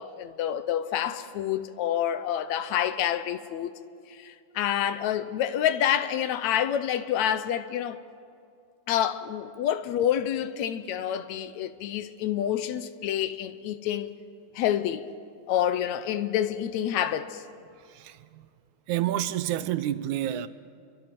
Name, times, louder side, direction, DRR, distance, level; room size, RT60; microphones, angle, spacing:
voice 1, 0.0-3.7 4.1-8.0 8.9-14.1 14.6-15.1 15.5-17.4, left 10 dB, 75° left, 2.0 m, -28 dB
voice 2, 17.7-18.5 18.9-20.5, right 12 dB, 85° right, 2.2 m, -29 dB
30.0 x 23.5 x 6.0 m
omnidirectional pair, 3.4 m